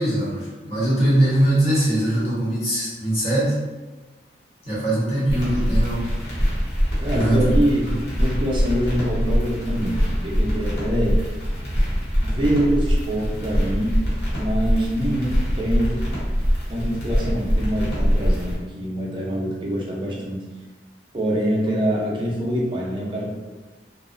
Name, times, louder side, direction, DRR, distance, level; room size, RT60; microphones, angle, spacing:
voice 1, 0.0-3.5 4.6-6.1 7.1-7.5 7.9-8.0, right 1 dB, 35° left, -9 dB, 1.0 m, -21 dB
sound 1, 5.3-18.5, equal, 85° left, 0.9 m, -23 dB
voice 2, 5.4-5.7 7.0-7.9 8.2-11.2 12.2-14.0 14.4-16.1 16.7-20.4 21.1-23.3, equal, 30° right, -3 dB, 0.5 m, -25 dB
2.6 x 2.0 x 2.5 m, 1.2 s
head